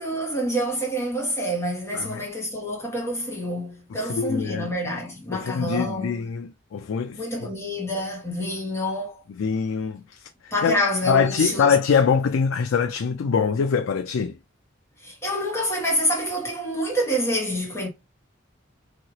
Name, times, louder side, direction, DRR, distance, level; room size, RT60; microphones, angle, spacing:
voice 1, 0.0-6.2 7.1-9.2 10.5-11.7 15.0-17.9, equal, 15° left, 1.4 m, -27 dB
voice 2, 1.9-2.3 3.9-4.7 5.3-7.5 9.4-10.8 11.1-14.4, left 6 dB, 85° left, 0.3 m, -24 dB
3.1 x 2.7 x 2.8 m
head